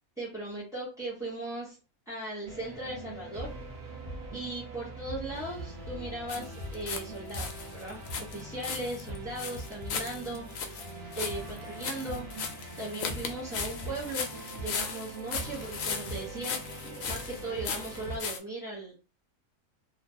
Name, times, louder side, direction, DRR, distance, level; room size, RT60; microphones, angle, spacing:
voice 1, 0.2-1.8 2.1-3.5 4.3-10.8 11.2-12.3 12.8-14.3 14.5-18.9, right 2 dB, 5° right, -8 dB, 0.6 m, -38 dB
sound 1, 2.4-18.2, right 1 dB, 50° right, 0.9 m, -42 dB
sound 2, 6.3-7.0 7.3-18.4, left 6 dB, 70° left, 0.9 m, -37 dB
2.9 x 2.1 x 2.7 m, 0.32 s
omnidirectional pair, 1.5 m